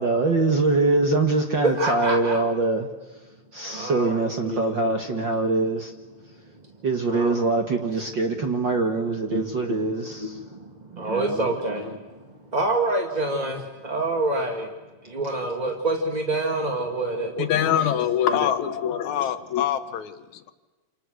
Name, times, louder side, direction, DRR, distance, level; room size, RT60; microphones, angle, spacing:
voice 1, 0.0-2.9 3.5-5.9 6.8-10.4 10.9-11.5, right 3 dB, 50° right, 4 dB, 1.4 m, -23 dB
voice 2, 1.6-2.4 3.7-5.2 7.1-7.4 8.3-8.4 9.3-14.7 15.0-17.9 18.3-18.4, right 2 dB, 20° right, 2 dB, 1.3 m, -28 dB
voice 3, 17.4-20.5, left 10 dB, 65° left, 11 dB, 2.1 m, -24 dB
29.0 x 28.5 x 6.4 m, 1.2 s
omnidirectional pair, 4.0 m